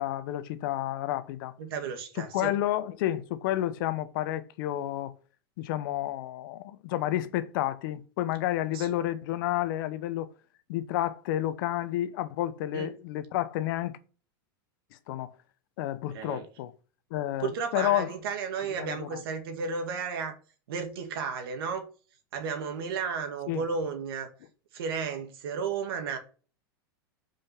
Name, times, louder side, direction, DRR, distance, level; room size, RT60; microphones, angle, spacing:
voice 1, 0.0-1.5 2.3-5.1 5.6-10.3 10.7-14.0 15.1-15.3 15.8-16.7 17.1-18.1 18.8-19.2 23.5-23.6, left 13 dB, 60° left, 0.9 m, -30 dB
voice 2, 1.6-2.5 8.7-8.9 12.7-12.9 16.1-16.5 17.4-20.4 20.7-21.8 22.3-24.3 24.7-26.2, right 5 dB, 75° right, 2.0 m, -33 dB
5.4 x 5.2 x 5.8 m
hypercardioid pair, 125°, 12 cm